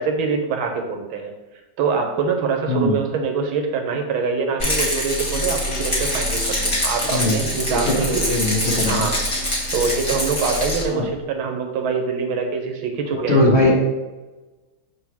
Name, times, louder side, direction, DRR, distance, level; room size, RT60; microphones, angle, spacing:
voice 1, 0.0-1.3 1.8-8.3 8.9-9.2 9.7-13.4, right 5 dB, 75° right, 3 dB, 1.7 m, -24 dB
Rattle, 4.6-10.8, left 1 dB, 15° left, 1.2 m, -24 dB
voice 2, 7.0-7.3 7.7-9.1 10.9-11.0 13.1-13.8, left 1 dB, 35° left, -4 dB, 1.4 m, -20 dB
6.1 x 3.8 x 6.0 m, 1.1 s
omnidirectional pair, 2.3 m